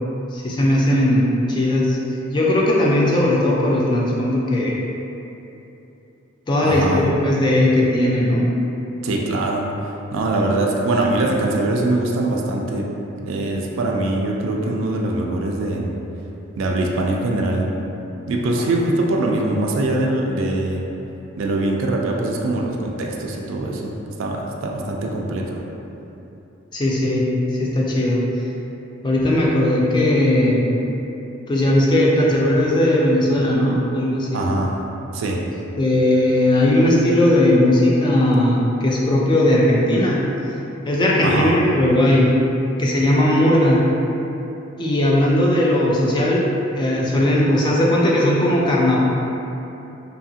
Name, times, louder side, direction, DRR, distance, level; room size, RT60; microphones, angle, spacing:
voice 1, 0.3-2.0 2.3-4.8 6.5-8.4 26.7-27.2 27.5-28.2 29.0-30.6 31.5-34.4 35.8-40.2 40.9-42.3 42.8-43.8 44.8-46.4 46.7-49.0, left 1 dB, 20° left, -4 dB, 0.3 m, -17 dB
voice 2, 6.6-7.0 9.0-9.7 10.1-12.9 13.2-15.9 16.6-17.7 18.3-20.8 21.4-25.6 34.3-34.8 35.1-35.4 41.2-41.5, right 2 dB, 70° right, -1 dB, 0.3 m, -22 dB
2.8 x 2.4 x 2.7 m, 3.0 s
head